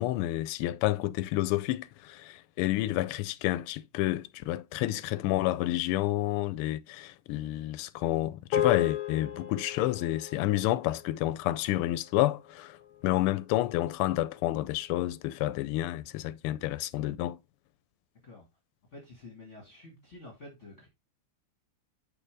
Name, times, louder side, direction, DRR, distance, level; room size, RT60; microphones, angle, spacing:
voice 1, 0.0-12.8 13.0-17.4, left 15 dB, 85° left, 1.5 m, -29 dB
sound 1, 8.5-13.0, left 11 dB, 65° left, 1.2 m, -35 dB
voice 2, 18.9-20.9, left 2 dB, 35° left, 1.9 m, -49 dB
6.6 x 5.0 x 3.3 m
omnidirectional pair, 2.4 m